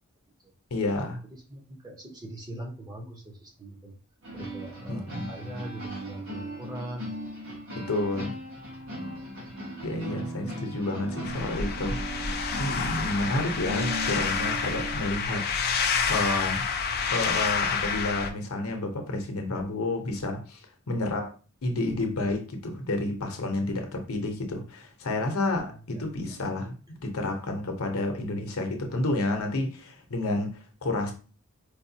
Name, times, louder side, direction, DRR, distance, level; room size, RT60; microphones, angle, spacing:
voice 1, 0.7-1.2 4.9-5.3 7.7-8.3 9.8-12.2 12.6-15.5 16.1-16.7 17.1-20.6 20.9-21.3 21.6-26.8 27.0-31.1, left 2 dB, 70° left, 0.8 m, -30 dB
voice 2, 1.5-3.9 4.3-7.1 25.9-26.4, right 1 dB, 20° right, 0.8 m, -41 dB
sound 1, 4.2-15.0, right 1 dB, 65° right, 1.5 m, -37 dB
sound 2, 11.2-18.3, left 5 dB, 45° left, 0.4 m, -28 dB
4.7 x 2.3 x 2.7 m
head